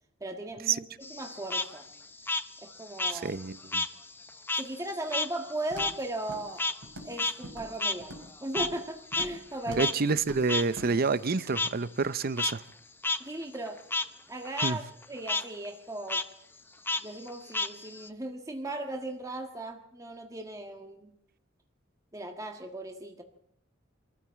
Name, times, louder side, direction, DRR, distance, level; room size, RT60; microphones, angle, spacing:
voice 1, 0.2-1.9 2.6-3.3 4.6-6.7 7.0-9.9 13.2-13.8 14.3-16.2 17.0-21.1 22.1-23.2, right 1 dB, 15° right, 1.6 m, -37 dB
Frog, 1.0-3.9 4.2-8.9 9.1-9.3 9.8-9.9 10.5-10.6 11.5-11.7 12.2-12.5 13.0-13.2 13.5-14.0 14.4-14.7 15.0-15.4 16.1-16.2 16.9-18.1, left 3 dB, 10° left, 0.9 m, -31 dB
voice 2, 3.2-3.8 9.8-12.6 14.6-14.8, right 4 dB, 50° right, 0.7 m, -28 dB
Walk footsteps, 5.7-6.0 6.3-6.6 6.8-7.2 7.4-8.3 8.6-8.8 9.1-9.4 9.7-9.9 10.2-10.4 10.8-10.9, right 1 dB, 90° right, 4.5 m, -44 dB
25.0 x 14.0 x 7.5 m
head